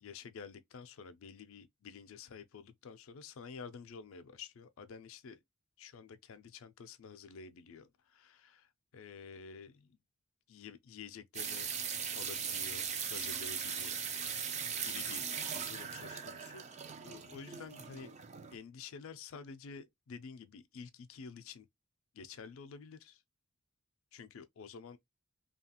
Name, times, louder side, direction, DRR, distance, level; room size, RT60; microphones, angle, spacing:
voice 1, 0.0-5.4 5.8-8.7 8.9-10.0 10.5-11.7 12.1-14.0 14.3-15.2 15.7-16.6 17.0-18.1 18.5-21.7 22.1-23.2 24.1-25.0, left 5 dB, 70° left, 0.4 m, -50 dB
sound 1, 11.3-18.6, right 7 dB, 35° right, 0.4 m, -39 dB
2.8 x 2.3 x 2.8 m
head